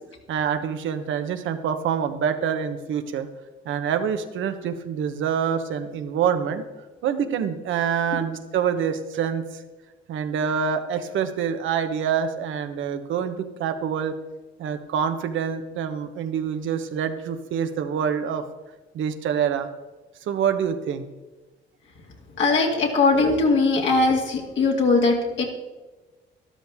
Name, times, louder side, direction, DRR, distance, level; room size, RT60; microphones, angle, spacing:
voice 1, 0.3-3.3 3.6-6.6 7.0-9.6 10.1-14.2 14.6-18.4 18.9-19.7 20.3-21.0, right 7 dB, 75° right, 8 dB, 1.1 m, -26 dB
voice 2, 22.4-25.4, left 3 dB, 70° left, -1 dB, 2.3 m, -20 dB
12.5 x 12.5 x 3.6 m, 1.2 s
cardioid pair, 90°, 20 cm